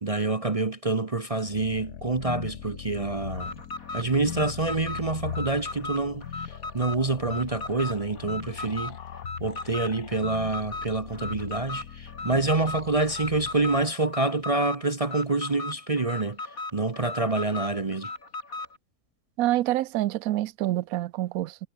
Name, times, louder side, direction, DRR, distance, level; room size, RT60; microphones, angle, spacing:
voice 1, 0.0-3.6 3.9-9.0 9.4-18.1, right 3 dB, 25° right, 0.9 m, -27 dB
sound 1, 1.4-13.9, left 9 dB, 90° left, 1.7 m, -40 dB
Alarm, 3.3-18.8, left 3 dB, 65° left, 4.6 m, -37 dB
voice 2, 19.4-21.6, right 15 dB, 70° right, 1.0 m, -26 dB
omnidirectional pair, 1.6 m